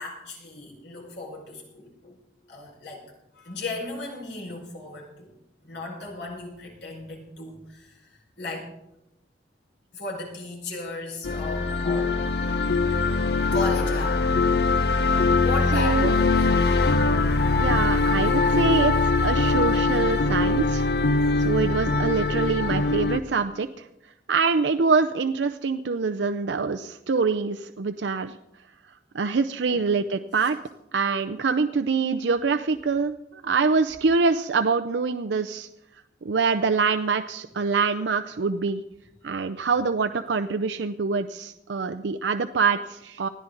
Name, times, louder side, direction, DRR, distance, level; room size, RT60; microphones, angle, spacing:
voice 1, 0.0-2.2 2.5-3.1 3.3-5.3 5.6-8.7 9.9-12.2 13.4-14.9 15.4-16.8 29.7-29.8 30.4-30.5, left 2 dB, 75° left, -1 dB, 5.1 m, -36 dB
sound 1, 11.2-23.2, left 3 dB, 60° left, 0.8 m, -22 dB
voice 2, 15.7-16.1 17.6-20.9 21.4-23.7 24.3-28.4 29.1-30.6 30.9-35.7 36.2-38.8 39.2-43.3, right 4 dB, 75° right, 9 dB, 0.5 m, -25 dB
20.0 x 13.5 x 3.9 m, 0.90 s
head